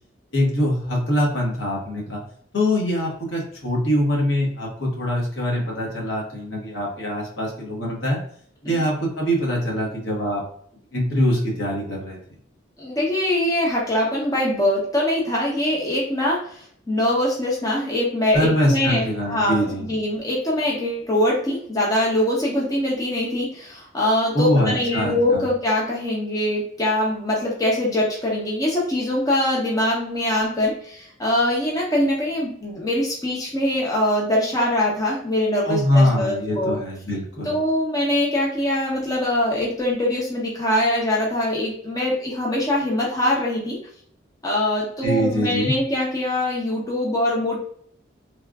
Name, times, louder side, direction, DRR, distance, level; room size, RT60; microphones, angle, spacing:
voice 1, 0.3-2.2 2.5-8.2 8.6-10.4 10.9-12.2 18.3-19.8 24.3-25.4 35.6-37.6 45.0-45.7, equal, 70° left, -3 dB, 1.3 m, -23 dB
voice 2, 12.8-36.8 37.4-43.8 44.4-47.6, left 1 dB, 20° left, -4 dB, 0.7 m, -23 dB
3.3 x 2.4 x 2.3 m, 0.62 s
head